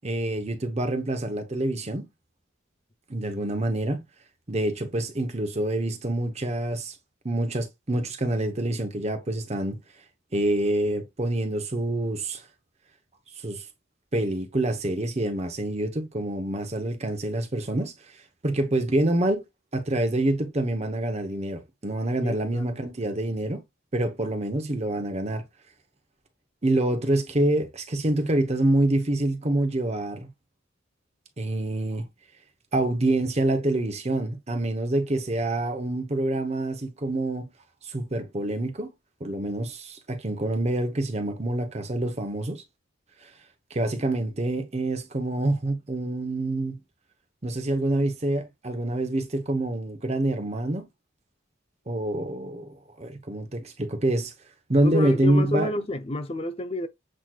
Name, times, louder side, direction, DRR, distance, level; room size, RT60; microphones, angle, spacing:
voice 1, 0.0-2.1 3.1-4.0 4.5-6.9 7.2-9.8 10.3-12.4 13.4-13.6 14.1-17.9 18.4-19.4 19.7-23.6 23.9-25.4 26.6-30.3 31.4-32.1 32.7-37.5 37.8-38.9 39.2-42.6 43.2-43.3 43.7-46.8 47.4-50.9 51.9-54.3 54.7-55.7, right 1 dB, 35° right, 0.9 m, -26 dB
voice 2, 22.2-22.8 54.8-56.9, left 2 dB, 30° left, 0.5 m, -30 dB
7.6 x 3.0 x 2.3 m
head